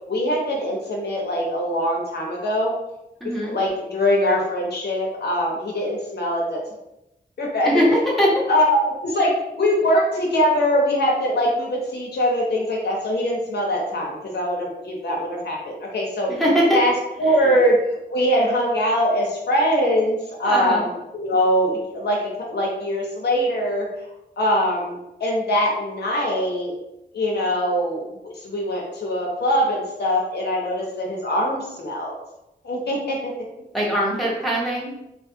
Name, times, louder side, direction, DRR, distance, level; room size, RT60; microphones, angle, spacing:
voice 1, 0.1-2.8 3.2-6.6 7.4-7.8 8.5-16.3 16.7-16.9 17.2-23.9 24.4-26.7 27.1-32.2 32.6-33.3, equal, 70° left, -1 dB, 0.6 m, -22 dB
voice 2, 3.2-3.5 7.6-8.3 9.8-9.9 16.3-16.8 17.4-17.6 20.4-20.8 33.7-34.9, equal, ahead, -6 dB, 1.0 m, -21 dB
2.4 x 2.3 x 2.6 m, 0.90 s
cardioid pair, 65°, 18 cm